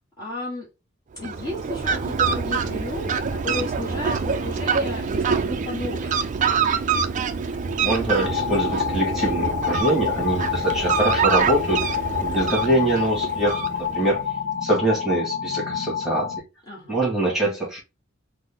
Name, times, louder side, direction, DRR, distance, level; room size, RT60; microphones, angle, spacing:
voice 1, 0.2-0.7 1.2-6.3 16.7-17.0, left 2 dB, 20° left, -6 dB, 1.1 m, -34 dB
Fowl, 1.1-14.2, right 5 dB, 40° right, 0.4 m, -25 dB
voice 2, 7.8-11.8 12.2-14.2 14.6-16.3 16.9-17.8, right 2 dB, ahead, -3 dB, 1.4 m, -24 dB
sound 1, 8.2-16.4, left 8 dB, 80° left, 0.6 m, -27 dB
3.7 x 2.0 x 3.5 m, 0.27 s
head